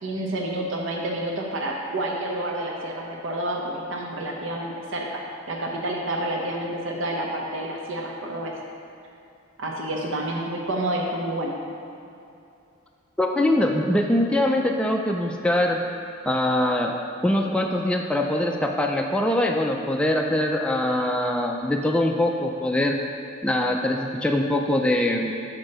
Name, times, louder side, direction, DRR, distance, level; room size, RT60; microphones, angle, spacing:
voice 1, 0.0-5.2 5.5-8.5 9.6-11.5, right 1 dB, 65° right, -1 dB, 0.9 m, -29 dB
voice 2, 13.2-15.8 16.3-17.0 17.2-23.0 23.4-25.3, left 1 dB, 5° left, 1 dB, 0.3 m, -23 dB
6.1 x 4.4 x 6.4 m, 2.7 s
head